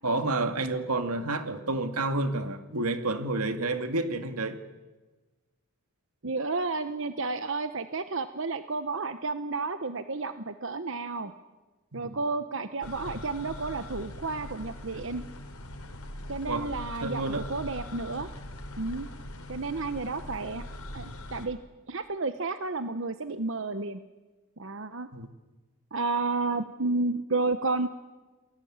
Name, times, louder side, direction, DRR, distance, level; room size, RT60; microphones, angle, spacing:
voice 1, 0.0-4.6 11.9-12.2 16.4-16.7 17.0-17.4 25.1-25.3, right 2 dB, 85° right, 8 dB, 2.3 m, -29 dB
voice 2, 6.2-11.3 11.9-15.2 16.3-18.3 18.8-19.1 19.5-20.6 20.9-21.6 21.9-24.0 24.6-25.1 25.9-27.9, right 3 dB, 60° right, 10 dB, 1.0 m, -31 dB
sound 1, 12.8-21.5, left 1 dB, 80° left, 3.9 m, -41 dB
29.0 x 21.0 x 8.8 m, 1.2 s
head